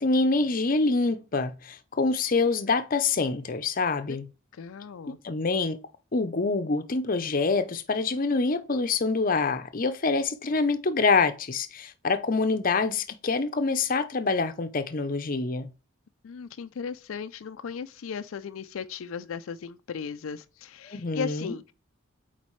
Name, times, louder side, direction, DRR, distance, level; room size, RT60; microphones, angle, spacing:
voice 1, 0.0-4.3 5.1-5.8 6.1-15.7 20.9-21.5, left 3 dB, 45° left, 0.6 m, -26 dB
voice 2, 4.5-5.2 16.2-21.7, left 6 dB, 80° left, 0.4 m, -37 dB
8.3 x 4.0 x 3.1 m
head